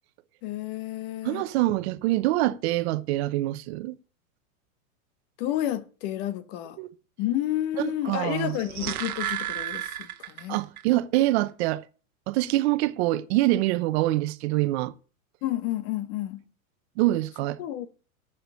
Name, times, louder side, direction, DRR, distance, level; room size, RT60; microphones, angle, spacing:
voice 1, 0.4-1.4 5.4-6.8 7.2-10.6 15.4-16.4 17.6-17.9, left 13 dB, 45° left, 1.3 m, -30 dB
voice 2, 1.2-4.0 6.8-6.9 7.8-8.5 10.5-11.8 12.3-14.9 17.0-17.6, right 17 dB, 50° right, 0.9 m, -25 dB
sound 1, 8.4-10.8 11.1-11.2, right 12 dB, 90° right, 1.1 m, -33 dB
7.9 x 6.9 x 6.8 m
hypercardioid pair, 130°, 43 cm